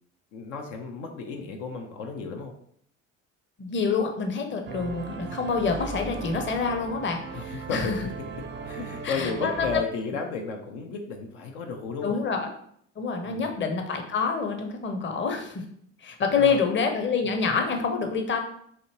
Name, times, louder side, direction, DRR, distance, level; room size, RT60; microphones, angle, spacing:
voice 1, 0.3-2.5 7.3-8.1 8.7-12.2 13.2-13.5 16.4-16.6, left 4 dB, 70° left, 3 dB, 0.7 m, -33 dB
voice 2, 3.6-8.0 9.0-9.8 12.0-12.5 13.0-15.6 16.0-18.4, left 5 dB, 30° left, 4 dB, 0.8 m, -27 dB
sound 1, 4.7-9.8, right 4 dB, 30° right, 0.5 m, -37 dB
4.2 x 2.8 x 2.9 m, 0.66 s
hypercardioid pair, 60°, 39 cm